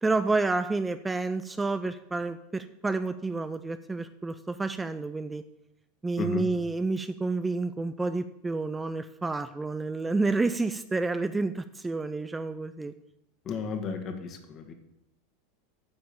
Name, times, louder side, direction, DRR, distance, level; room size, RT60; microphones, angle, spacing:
voice 1, 0.0-5.4 6.0-12.9, right 3 dB, 15° right, 11 dB, 0.5 m, -29 dB
voice 2, 13.5-14.7, left 4 dB, 40° left, 5 dB, 1.7 m, -33 dB
9.6 x 5.8 x 7.0 m, 0.90 s
hypercardioid pair, 95°, 0 cm